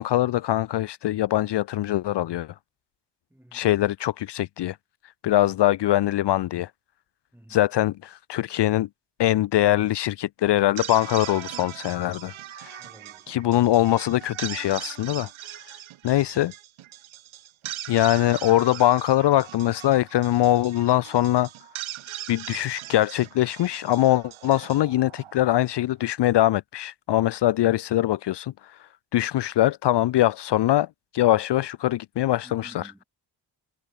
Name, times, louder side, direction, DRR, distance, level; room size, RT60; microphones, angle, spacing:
voice 1, 0.0-2.5 3.5-4.8 5.2-6.7 7.5-8.9 9.2-12.8 13.3-15.3 16.0-16.5 17.9-21.5 22.3-30.9 31.1-32.9, left 14 dB, 60° left, 0.7 m, -22 dB
voice 2, 3.3-3.7 7.3-7.7 12.8-13.3 32.4-33.0, right 1 dB, 5° right, 4.1 m, -52 dB
sound 1, 10.6-25.8, right 13 dB, 80° right, 2.2 m, -40 dB
cardioid pair, 115°, 47 cm